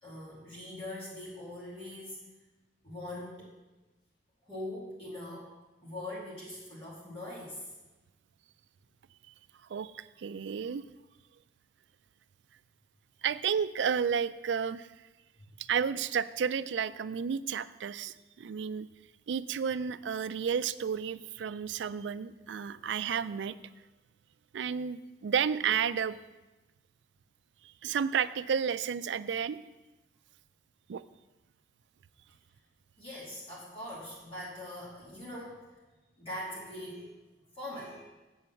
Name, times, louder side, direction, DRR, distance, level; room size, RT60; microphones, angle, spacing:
voice 1, 0.0-2.2 2.8-3.5 4.5-5.5 5.8-7.6 33.0-35.7 36.2-37.2 37.5-38.1, left 1 dB, 30° left, -7 dB, 2.5 m, -42 dB
voice 2, 9.7-10.8 13.2-14.9 15.7-18.9 19.3-23.6 24.5-26.2 27.8-29.6 30.9-31.0, right 7 dB, 75° right, 15 dB, 0.4 m, -31 dB
7.9 x 6.9 x 7.1 m, 1.1 s
head